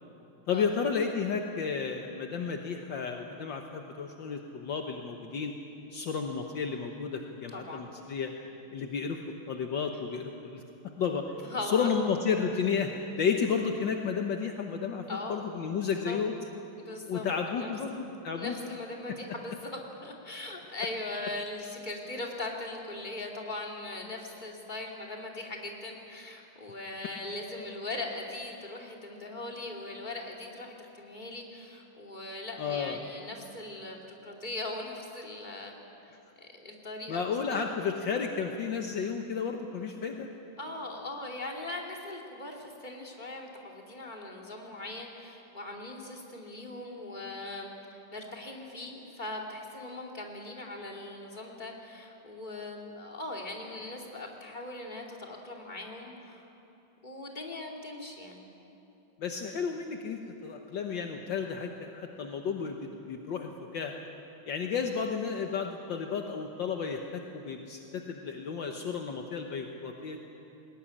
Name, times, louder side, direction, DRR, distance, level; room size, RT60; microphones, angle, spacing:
voice 1, 0.5-5.5 5.9-8.3 8.7-9.2 9.5-10.6 11.0-11.2 11.6-15.0 15.3-16.3 17.1-18.6 32.6-33.0 37.1-40.3 59.2-64.0 64.5-70.2, left 6 dB, 65° left, 3 dB, 1.8 m, -32 dB
voice 2, 7.5-7.8 11.4-11.9 15.1-15.5 16.0-16.2 16.8-17.7 18.3-35.7 36.1-37.6 40.6-56.5 57.0-58.5, left 2 dB, 20° left, 0 dB, 2.8 m, -40 dB
20.5 x 19.5 x 9.9 m, 2.9 s
omnidirectional pair, 2.3 m